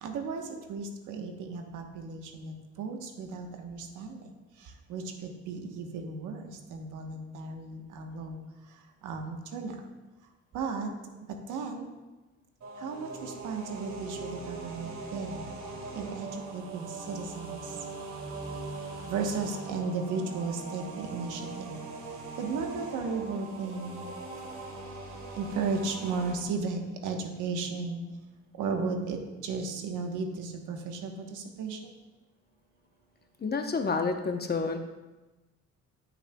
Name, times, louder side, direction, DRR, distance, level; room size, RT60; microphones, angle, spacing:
voice 1, 0.0-0.4 0.7-4.2 4.9-8.4 9.0-9.8 10.5-10.9 11.5-11.9 12.8-15.5 15.9-17.6 19.1-21.8 22.4-24.1 25.3-28.0 28.6-31.8, right 4 dB, 85° right, 4 dB, 1.1 m, -35 dB
sound 1, 12.6-26.3, right 3 dB, 65° right, 1.8 m, -41 dB
voice 2, 33.4-34.8, left 4 dB, 35° left, 5 dB, 0.9 m, -29 dB
13.5 x 6.5 x 2.3 m, 1.1 s
cardioid pair, 90°, 30 cm